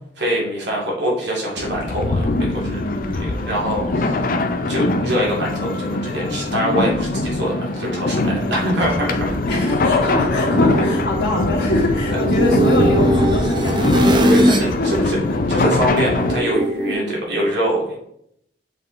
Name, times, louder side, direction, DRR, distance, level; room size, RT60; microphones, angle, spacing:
voice 1, 0.2-2.8 3.2-4.2 4.7-9.4 12.1-12.2 14.2-15.2 15.5-18.0, equal, 70° right, -3 dB, 2.2 m, -24 dB
sound 1, 1.6-16.4, left 2 dB, 50° left, 0.5 m, -22 dB
voice 2, 2.8-3.2 3.6-4.0 8.3-8.7 9.5-15.6 16.8-17.2, left 2 dB, 85° left, -10 dB, 2.0 m, -25 dB
sound 2, 9.4-14.7 15.1-16.9, right 1 dB, 25° right, 0.7 m, -21 dB
7.3 x 4.2 x 3.2 m, 0.74 s
head